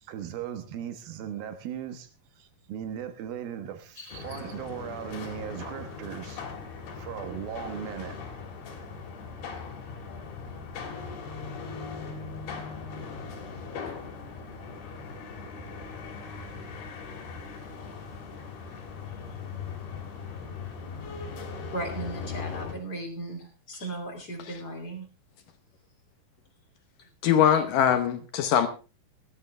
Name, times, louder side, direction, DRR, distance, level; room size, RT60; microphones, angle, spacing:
voice 1, 0.0-2.1 2.4-6.5 7.0-8.2, right 9 dB, 75° right, 3.1 m, -38 dB
voice 2, 4.0-4.4 21.7-25.1, right 2 dB, 30° left, 3.0 m, -37 dB
sound 1, 4.1-22.7, left 5 dB, 90° left, 4.6 m, -39 dB
voice 3, 27.2-28.7, left 9 dB, 70° left, 2.4 m, -22 dB
17.5 x 13.0 x 3.3 m
omnidirectional pair, 4.3 m